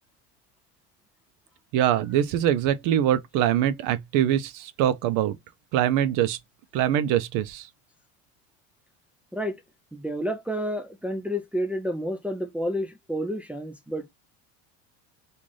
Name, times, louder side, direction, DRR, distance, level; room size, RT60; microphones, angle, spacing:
voice 1, 1.7-5.4 5.7-6.4 6.7-7.7, right 11 dB, 60° right, 0.6 m, -23 dB
voice 2, 9.9-14.0, equal, 5° right, 0.4 m, -30 dB
3.1 x 2.6 x 3.8 m
supercardioid pair, 120°, 36 cm